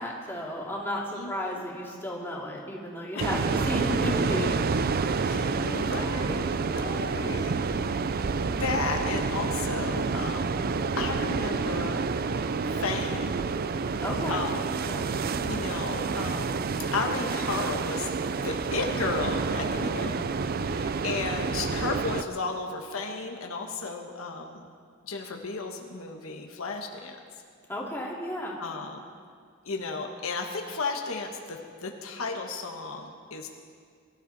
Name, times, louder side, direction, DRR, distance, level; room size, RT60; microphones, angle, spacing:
voice 1, 0.0-4.6 5.5-6.1 14.0-14.5 14.8-15.0 19.6-20.2 27.7-28.6, left 1 dB, 10° left, -4 dB, 2.5 m, -34 dB
voice 2, 1.2-1.6 3.1-3.3 5.2-7.5 7.8-12.1 12.7-13.4 14.3-14.7 15.4-18.1 18.4-20.1 20.6-24.7 25.0-27.2 28.6-29.0 29.6-33.5, left 3 dB, 80° left, 2 dB, 1.3 m, -34 dB
sound 1, 3.2-22.2, right 4 dB, 45° right, 0.5 m, -29 dB
23.0 x 12.5 x 4.1 m, 2.2 s
head